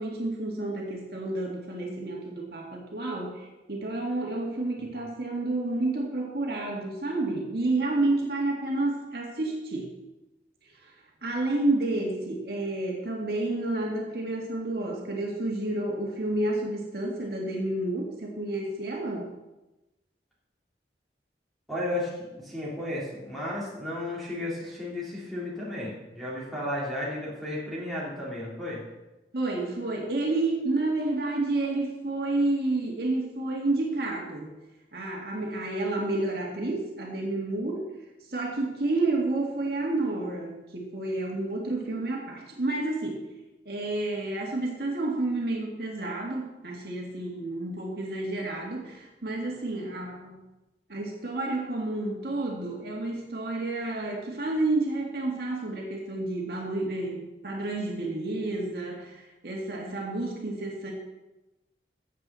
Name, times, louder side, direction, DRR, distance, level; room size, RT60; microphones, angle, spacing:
voice 1, 0.0-9.9 10.8-10.9 11.2-19.3 29.3-34.5 34.9-37.8 38.3-43.2 43.7-50.4 50.9-60.9, right 2 dB, 60° right, -1 dB, 2.0 m, -30 dB
voice 2, 21.7-28.8, left 1 dB, ahead, -7 dB, 3.4 m, -33 dB
15.0 x 7.7 x 4.2 m, 1.0 s
head